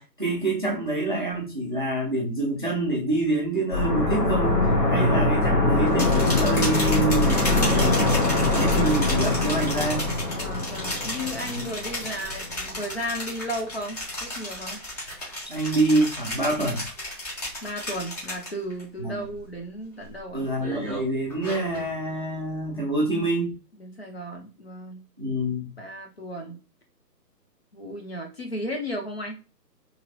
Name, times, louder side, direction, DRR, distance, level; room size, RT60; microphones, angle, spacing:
voice 1, 0.0-4.6 4.9-8.0 8.5-10.1 11.6-11.7 15.5-16.8 19.0-19.2 20.3-23.5 25.2-25.7, right 2 dB, 30° right, 0.5 m, -26 dB
sound 1, 3.7-12.4 12.7-12.8, left 2 dB, 70° left, 0.9 m, -23 dB
sound 2, 5.9-18.8 19.2-19.6 20.0-21.9, left 1 dB, 25° left, 1.1 m, -34 dB
voice 2, 10.4-14.8 17.6-20.5 23.8-25.0 25.8-26.6 27.7-29.4, equal, 40° left, 0.5 m, -34 dB
3.0 x 2.8 x 2.4 m
figure-of-eight pair, 145°, 50 cm